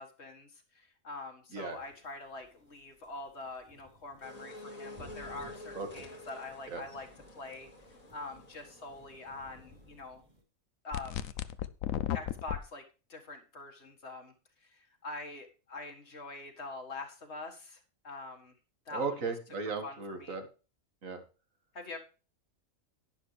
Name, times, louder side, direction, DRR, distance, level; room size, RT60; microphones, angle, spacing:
voice 1, 0.0-7.1 7.4-7.7 8.1-10.2 10.8-11.3 12.1-12.8 13.1-14.3 14.6-18.5 18.9-19.1 19.5-20.4 21.7-22.0, left 3 dB, 55° left, 4 dB, 2.0 m, -44 dB
sound 1, 1.6-10.4, left 1 dB, 30° right, 2.9 m, -58 dB
sound 2, 4.2-10.0, left 2 dB, 30° left, 1.9 m, -50 dB
voice 2, 5.7-6.1 6.7-6.8 18.9-20.5 21.0-21.2, right 4 dB, 75° right, 6 dB, 2.0 m, -36 dB
sound 3, 10.9-12.6, left 11 dB, 80° left, 1.1 m, -34 dB
11.0 x 10.5 x 3.3 m, 0.33 s
omnidirectional pair, 1.4 m